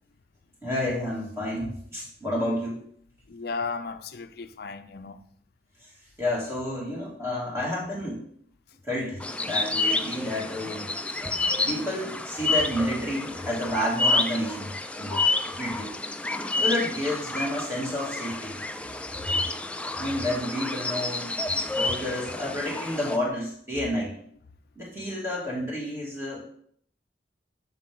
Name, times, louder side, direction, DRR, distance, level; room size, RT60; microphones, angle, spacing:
voice 1, 0.6-2.8 5.8-5.9 6.2-8.2 8.8-10.9 11.2-11.3 11.6-14.7 15.0-15.2 15.5-15.9 16.5-18.6 20.0-24.1 24.7-26.4, left 1 dB, 15° right, 2.8 m, -30 dB
voice 2, 3.3-5.2 15.1-15.3, left 4 dB, 60° left, 0.5 m, -35 dB
sound 1, 9.2-23.2, left 3 dB, 5° left, 0.4 m, -29 dB
7.4 x 6.6 x 3.8 m
head